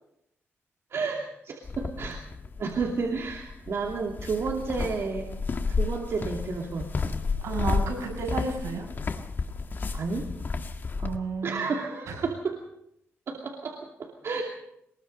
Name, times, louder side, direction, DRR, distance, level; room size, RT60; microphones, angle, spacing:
voice 1, 0.9-2.2 2.6-5.3 5.7-6.9 9.9-10.3 11.4-12.6 13.3-14.4, right 4 dB, 60° right, 1 dB, 2.7 m, -31 dB
sound 1, 1.6-11.2, left 4 dB, 40° left, 1.8 m, -32 dB
voice 2, 7.4-8.9 11.0-11.7 12.1-12.2, right 4 dB, 85° right, 1 dB, 7.7 m, -32 dB
23.0 x 21.5 x 5.5 m, 0.78 s
cardioid pair, 105°, 5 cm